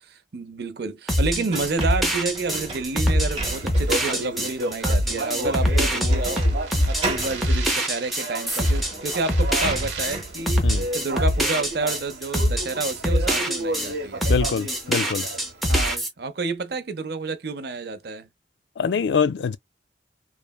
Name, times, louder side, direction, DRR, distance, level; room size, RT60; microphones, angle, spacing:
voice 1, 0.0-6.5 6.9-14.3 15.7-18.3, right 3 dB, 60° right, 0.6 m, -30 dB
sound 1, 1.1-13.9 14.2-16.1, equal, ahead, 0.6 m, -23 dB
sound 2, 1.5-4.1 4.6-4.7 6.1-6.6 6.8-7.5 8.5-8.6 8.9-10.4, right 2 dB, 30° right, 1.0 m, -33 dB
Speech, 3.3-15.7, right 2 dB, 90° right, 1.0 m, -33 dB
voice 2, 14.3-15.3 18.8-19.6, left 6 dB, 75° left, 0.4 m, -24 dB
3.2 x 2.0 x 2.3 m
head